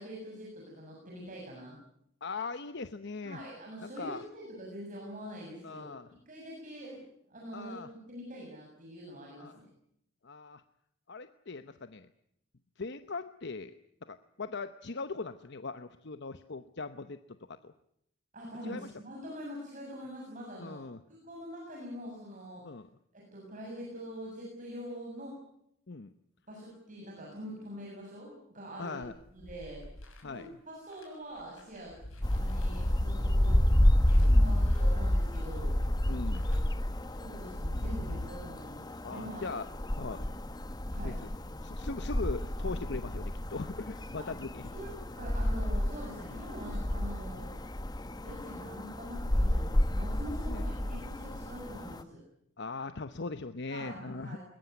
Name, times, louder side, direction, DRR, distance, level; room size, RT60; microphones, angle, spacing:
voice 1, 0.0-1.8 3.2-5.9 6.3-7.0 7.3-9.7 18.3-20.8 21.1-22.6 23.1-25.3 26.5-29.0 29.3-29.8 30.3-33.6 34.2-35.8 37.2-39.5 40.9-41.1 44.2-44.3 44.6-47.5 48.2-52.2 53.7-54.4, equal, 40° right, -2 dB, 7.2 m, -44 dB
voice 2, 2.2-3.4 3.8-4.2 5.6-6.1 7.5-7.9 9.4-9.6 10.2-10.6 11.1-12.1 12.8-13.7 14.1-17.2 17.5-17.7 18.6-18.9 20.6-21.0 22.6-22.9 25.9-26.1 28.8-29.1 30.2-30.5 34.2-34.7 36.1-36.5 39.0-39.7 40.0-40.3 41.0-41.3 41.6-44.6 46.3-46.4 47.3-47.4 50.5-50.6 52.6-54.4, left 3 dB, 55° left, 10 dB, 0.9 m, -40 dB
sound 1, 29.0-30.2 30.9-31.0 31.4-38.2, left 1 dB, 80° left, 6.6 m, -40 dB
sound 2, 32.2-52.0, left 1 dB, 20° left, 0.9 m, -30 dB
21.5 x 21.0 x 9.5 m, 0.74 s
head